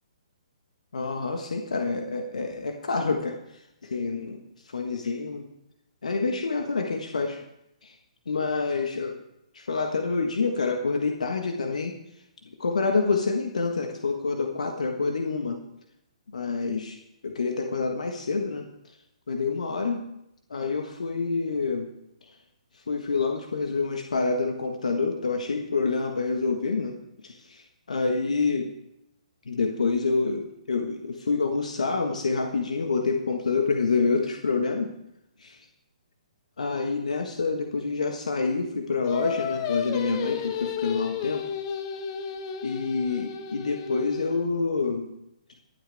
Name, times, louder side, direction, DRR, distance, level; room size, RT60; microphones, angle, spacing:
voice 1, 0.9-3.3 3.9-4.4 4.7-5.4 6.0-7.4 7.8-7.9 8.3-9.1 9.5-11.9 12.6-15.6 16.3-17.0 17.2-18.6 19.3-20.0 20.5-21.9 22.9-26.9 27.2-27.6 27.9-28.7 29.5-34.9 35.4-35.5 36.6-41.4 42.6-45.1, left 4 dB, 75° left, 4 dB, 1.5 m, -27 dB
Singing, 39.0-44.4, left 8 dB, 35° left, 1.5 m, -33 dB
22.5 x 8.3 x 3.5 m, 0.82 s
figure-of-eight pair, 135°, 4 cm